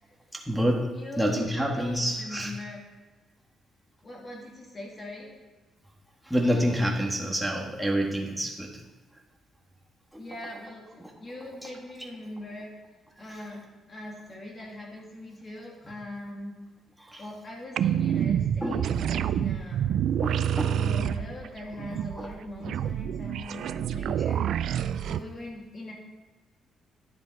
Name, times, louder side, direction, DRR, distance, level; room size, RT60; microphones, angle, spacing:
voice 1, 0.3-2.5 6.3-8.8 11.0-11.1 11.6-11.7 17.0-17.2 18.6-19.1 20.2-20.7 22.2-22.3, equal, ahead, -1 dB, 1.8 m, -28 dB
voice 2, 0.9-2.8 4.0-5.3 10.2-10.9 11.2-12.7 13.2-16.6 17.2-20.0 20.5-24.5 25.0-25.9, left 1 dB, 35° left, -1 dB, 2.5 m, -41 dB
sound 1, 17.8-25.2, right 9 dB, 70° right, 0.4 m, -28 dB
10.5 x 6.9 x 4.8 m, 1.3 s
cardioid pair, 90°, 0 cm